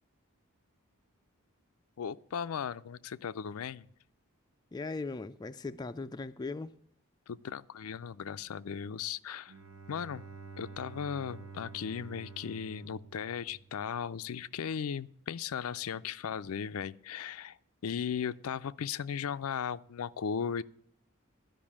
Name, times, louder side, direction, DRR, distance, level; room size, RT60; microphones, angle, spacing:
voice 1, 2.0-3.9 7.3-9.5 9.9-10.2 10.6-17.6 17.8-20.6, left 7 dB, 80° left, 0.4 m, -37 dB
voice 2, 4.7-6.7, left 3 dB, 20° left, 0.3 m, -38 dB
Bowed string instrument, 9.5-14.1, right 5 dB, 65° right, 0.9 m, -49 dB
12.5 x 5.5 x 8.5 m
head